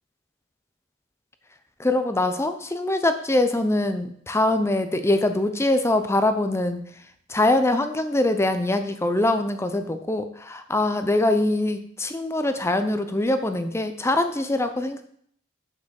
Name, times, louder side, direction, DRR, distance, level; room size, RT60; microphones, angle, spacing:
voice 1, 1.8-6.8 7.3-15.0, left 2 dB, 15° left, 8 dB, 0.5 m, -23 dB
6.6 x 6.0 x 6.4 m, 0.64 s
head